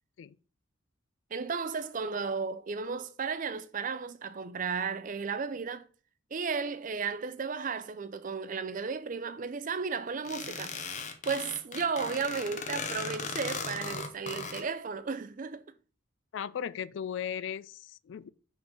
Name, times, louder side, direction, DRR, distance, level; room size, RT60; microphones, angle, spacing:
voice 1, 1.3-5.9 6.3-10.8 11.2-15.6, right 5 dB, 40° right, 0.5 m, -34 dB
sound 1, 10.3-14.6, left 4 dB, 35° left, 0.8 m, -37 dB
voice 2, 16.3-18.3, left 8 dB, 60° left, 0.3 m, -37 dB
5.9 x 3.8 x 5.2 m
head